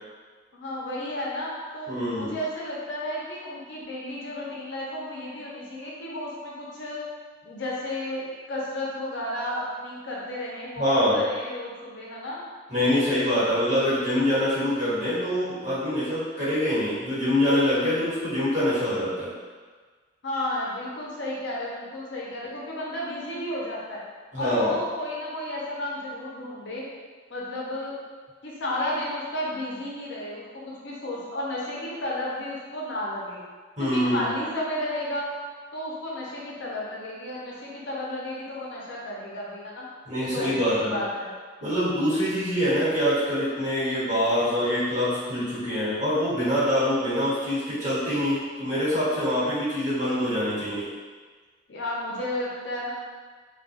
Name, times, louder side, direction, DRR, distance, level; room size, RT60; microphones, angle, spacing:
voice 1, 0.5-7.0 7.4-12.4 20.2-24.0 24.4-26.9 27.3-27.9 28.4-33.4 33.8-35.3 35.7-39.9 40.2-41.3 51.7-52.9, left 1 dB, 65° left, -5 dB, 0.6 m, -32 dB
voice 2, 1.9-2.3 10.8-11.2 12.7-19.3 24.3-24.7 33.8-34.3 40.0-40.9 41.6-50.9, equal, 40° right, -12 dB, 1.3 m, -25 dB
2.3 x 2.2 x 2.7 m, 1.5 s
head